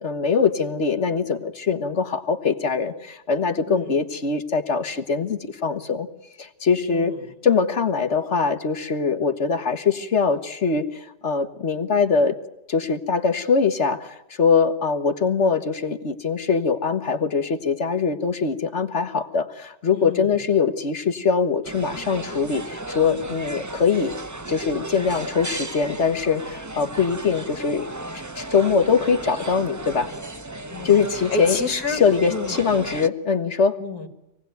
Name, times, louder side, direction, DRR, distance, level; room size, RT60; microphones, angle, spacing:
voice 1, 0.0-6.1 6.4-7.1 7.4-12.4 12.7-24.1 24.5-27.9 28.1-30.1 30.8-31.6 31.9-33.8, left 5 dB, 45° left, 8 dB, 1.6 m, -22 dB
voice 2, 19.9-20.3 30.7-31.0 31.3-32.0 32.3-32.6 33.8-34.1, left 3 dB, 65° left, 7 dB, 2.8 m, -29 dB
sound 1, 21.6-33.1, right 2 dB, 15° right, 0.6 m, -35 dB
26.0 x 19.5 x 9.3 m, 0.96 s
omnidirectional pair, 1.8 m